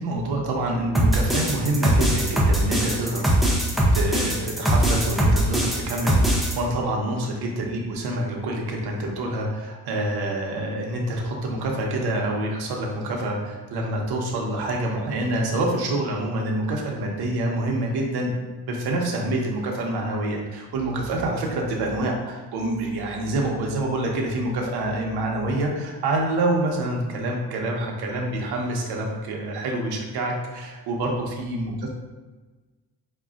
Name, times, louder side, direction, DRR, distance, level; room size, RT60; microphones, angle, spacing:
voice 1, 0.0-3.3 3.9-18.3 18.6-32.0, right 1 dB, 75° right, 0 dB, 0.8 m, -27 dB
sound 1, 0.9-6.5, right 1 dB, ahead, 0.4 m, -20 dB
5.1 x 2.3 x 2.4 m, 1.3 s
cardioid pair, 130°, 39 cm